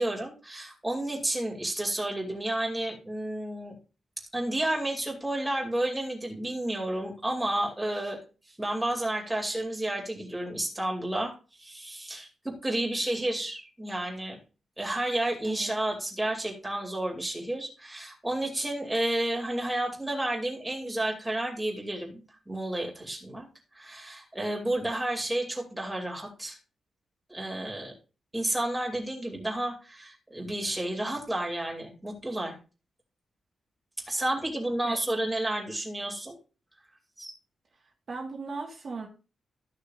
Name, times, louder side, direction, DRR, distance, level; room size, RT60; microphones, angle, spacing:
voice 1, 0.0-3.7 4.3-8.2 8.6-11.3 11.6-14.4 14.8-23.5 23.7-26.6 27.3-27.9 28.3-32.6 34.1-36.4 37.2-37.3, right 1 dB, 5° right, 0 dB, 2.5 m, -31 dB
voice 2, 38.1-39.1, right 4 dB, 40° right, 1 dB, 1.6 m, -37 dB
14.0 x 6.5 x 2.5 m, 0.32 s
wide cardioid pair, 175°, 0 cm